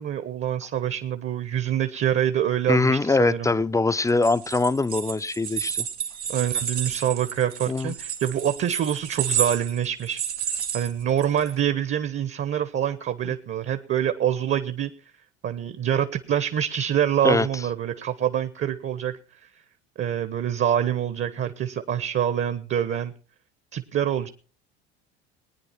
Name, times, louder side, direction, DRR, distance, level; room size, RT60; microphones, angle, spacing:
voice 1, 0.0-3.5 6.3-10.2 10.7-14.9 15.4-19.2 20.0-23.1 23.7-24.3, right 10 dB, 35° right, 1.2 m, -25 dB
voice 2, 2.7-5.9 7.7-7.9 17.2-17.5, left 3 dB, 10° left, 0.7 m, -22 dB
sound 1, 4.1-11.5, right 8 dB, 85° right, 1.7 m, -31 dB
19.5 x 9.9 x 4.3 m
figure-of-eight pair, 65°, 33 cm